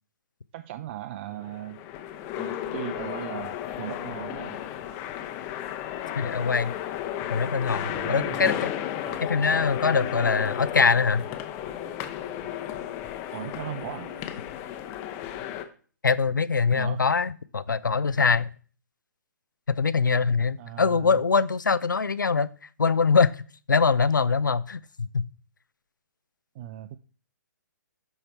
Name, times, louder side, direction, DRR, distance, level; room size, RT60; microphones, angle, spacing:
voice 1, 0.5-1.8 2.4-4.6 7.8-8.6 9.0-9.2 13.3-14.1 16.7-17.0 20.6-21.2 26.5-27.0, right 12 dB, 40° right, 0.4 m, -38 dB
sound 1, 1.3-15.6, left 11 dB, 30° left, 0.8 m, -34 dB
voice 2, 6.2-6.7 7.3-8.7 9.2-11.2 16.0-18.5 19.7-22.5 22.8-23.3 23.7-25.3, left 5 dB, 85° left, 0.5 m, -23 dB
11.0 x 4.3 x 4.4 m
figure-of-eight pair, 125°, 10 cm